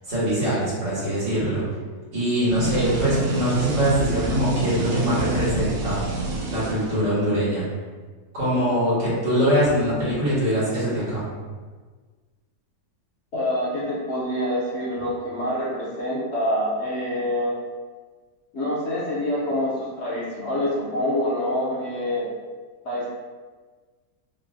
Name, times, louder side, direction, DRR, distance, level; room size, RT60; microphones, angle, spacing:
voice 1, 0.0-1.6 2.1-6.0 6.5-7.7 8.3-11.2, equal, 85° right, -10 dB, 2.3 m, -23 dB
sound 1, 2.4-7.3, right 2 dB, 65° right, 1.0 m, -27 dB
voice 2, 13.3-17.5 18.5-22.3 22.8-23.1, left 1 dB, 50° left, -7 dB, 0.9 m, -26 dB
5.7 x 2.1 x 2.7 m, 1.4 s
omnidirectional pair, 1.8 m